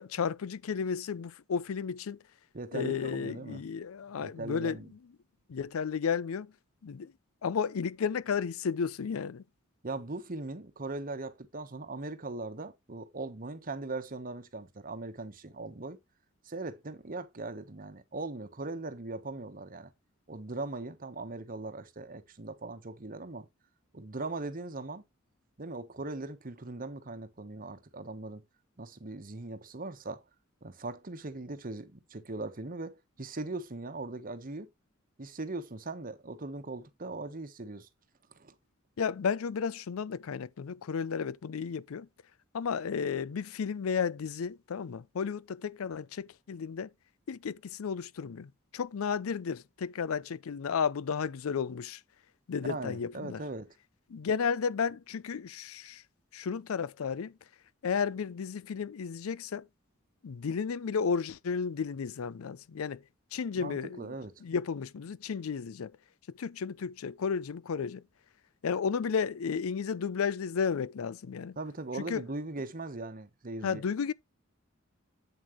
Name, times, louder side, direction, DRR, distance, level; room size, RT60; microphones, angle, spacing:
voice 1, 0.0-2.2 2.7-4.8 5.5-6.5 6.8-7.1 7.4-9.4 39.0-42.1 42.5-46.9 47.3-52.0 52.5-53.4 54.1-56.0 56.3-57.4 57.8-59.7 60.2-63.0 63.3-64.1 64.4-65.9 66.4-68.0 68.6-71.6 72.1-72.2 73.6-74.1, left 6 dB, 90° left, 0.5 m, -33 dB
voice 2, 2.5-3.6 4.2-4.9 9.8-16.0 16.4-19.9 20.3-23.5 23.9-25.0 25.6-28.4 28.8-30.2 30.6-34.7 35.2-37.9 38.3-38.5 52.7-53.8 63.6-64.4 71.6-73.8, right 2 dB, 40° right, 1.1 m, -40 dB
8.0 x 7.4 x 3.0 m
head